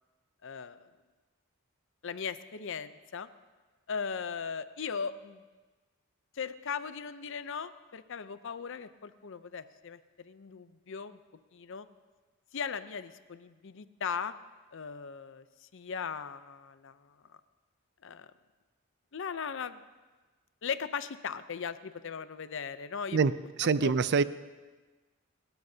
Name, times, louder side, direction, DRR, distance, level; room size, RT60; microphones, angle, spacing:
voice 1, 0.4-0.9 2.0-3.3 3.9-5.4 6.3-11.2 11.5-11.9 12.5-14.3 14.7-17.4 18.0-18.3 19.1-19.8 20.6-23.2 23.8-23.9, left 6 dB, 65° left, 12 dB, 0.6 m, -38 dB
voice 2, 23.6-24.2, right 5 dB, 55° right, 15 dB, 0.4 m, -24 dB
29.0 x 13.0 x 2.8 m, 1.3 s
head